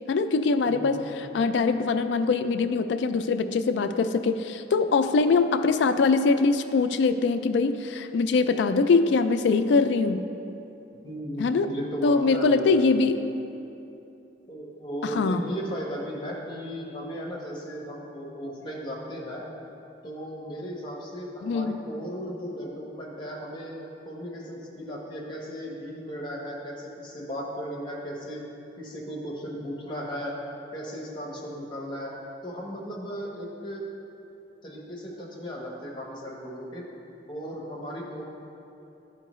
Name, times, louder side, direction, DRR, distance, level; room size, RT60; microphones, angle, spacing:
voice 1, 0.1-1.0 1.3-10.2 11.4-11.7 12.0-13.2 15.0-15.4 21.4-21.8, left 4 dB, 70° left, 9 dB, 0.3 m, -23 dB
voice 2, 0.7-1.1 11.0-13.0 14.5-19.4 20.0-23.8 24.0-28.4 28.8-30.3 30.7-32.1 32.4-33.9 34.6-36.8 37.3-38.2, equal, 25° left, -3 dB, 1.0 m, -36 dB
11.0 x 4.6 x 3.1 m, 2.9 s
head